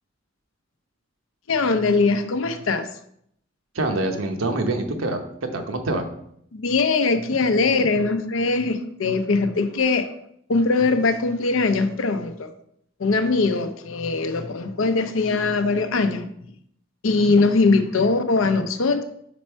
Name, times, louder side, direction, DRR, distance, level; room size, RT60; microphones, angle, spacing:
voice 1, 1.5-2.9 6.5-10.1 10.5-12.5 13.0-16.3 17.0-19.0, left 3 dB, 80° left, 9 dB, 0.6 m, -21 dB
voice 2, 3.7-5.2 5.5-6.1, right 2 dB, 85° right, 5 dB, 0.9 m, -25 dB
5.2 x 4.3 x 4.4 m, 0.71 s
head